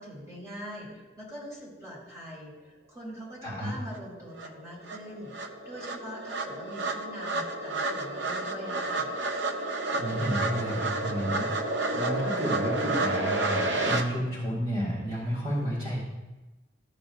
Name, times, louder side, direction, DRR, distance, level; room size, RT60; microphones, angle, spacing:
voice 1, 0.0-5.3 5.6-9.1, equal, 15° right, -6 dB, 2.7 m, -43 dB
voice 2, 3.4-3.7 9.9-16.0, equal, 30° right, -7 dB, 2.1 m, -31 dB
sound 1, 3.9-4.0 4.4-14.0, right 2 dB, 75° right, 0.7 m, -30 dB
13.0 x 6.8 x 2.5 m, 1.1 s
head